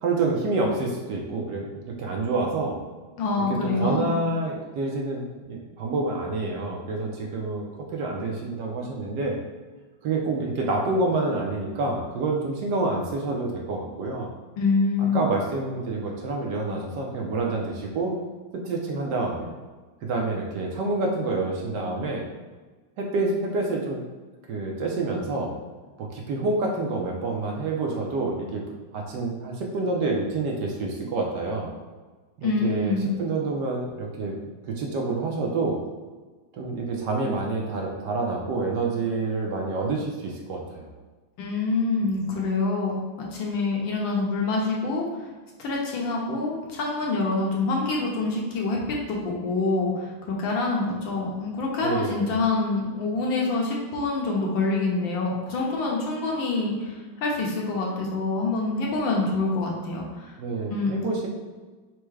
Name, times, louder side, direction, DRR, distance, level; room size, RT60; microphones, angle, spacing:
voice 1, 0.0-2.8 3.5-9.4 10.0-14.3 15.1-18.1 18.5-19.5 20.0-22.2 23.0-24.0 24.5-25.5 26.0-28.6 28.9-31.7 32.4-34.4 34.7-35.8 36.5-40.9 51.8-52.4 60.4-61.3, right 3 dB, 70° right, -1 dB, 1.0 m, -28 dB
voice 2, 3.2-4.2 14.6-15.2 32.4-33.1 41.4-43.0 43.3-45.1 45.6-60.3 60.7-60.9, left 3 dB, 70° left, -2 dB, 1.4 m, -26 dB
4.6 x 2.1 x 4.6 m, 1.3 s
omnidirectional pair, 2.3 m